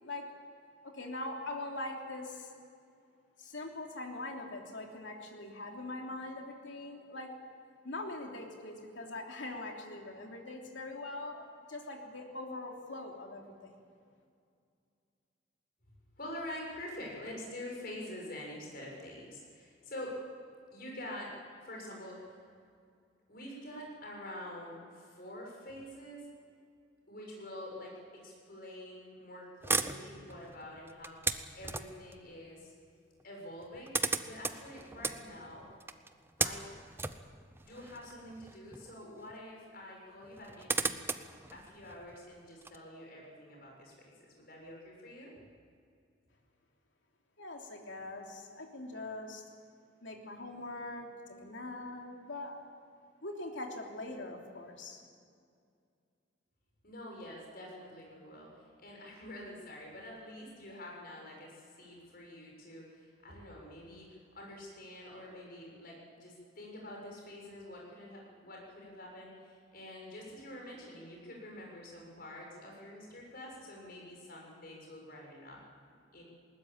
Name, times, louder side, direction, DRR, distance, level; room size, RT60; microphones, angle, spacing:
voice 1, 0.8-2.5 3.4-7.3 7.8-13.8 47.4-49.4 50.0-52.6 53.2-55.0, left 2 dB, 70° left, 1 dB, 3.3 m, -42 dB
voice 2, 16.2-20.2 20.7-21.3 21.6-22.4 23.3-26.3 27.1-32.7 33.2-33.9 34.2-35.7 36.4-36.7 37.6-41.1 41.5-45.3 56.8-75.6 76.1-76.2, left 1 dB, 50° left, -1 dB, 6.8 m, -47 dB
sound 1, 29.6-32.1 33.2-33.3 33.5-39.0 39.3-39.4 40.2-42.8, right 3 dB, 10° right, 0.7 m, -37 dB
20.5 x 19.0 x 8.8 m, 2.3 s
head